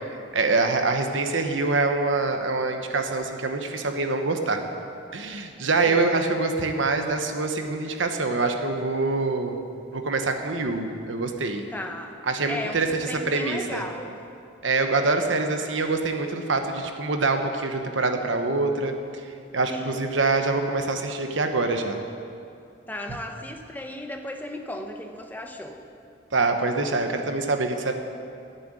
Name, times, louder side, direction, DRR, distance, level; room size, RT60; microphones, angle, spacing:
voice 1, 0.3-4.6 5.1-9.6 9.9-11.7 12.3-12.9 13.2-13.8 14.6-18.9 19.2-22.0 26.3-27.9, right 3 dB, 80° right, 5 dB, 1.1 m, -25 dB
voice 2, 5.9-6.2 11.7-12.2 12.5-14.2 19.7-20.0 22.9-25.8, left 1 dB, 10° left, 3 dB, 0.7 m, -35 dB
13.0 x 6.9 x 9.0 m, 2.5 s
head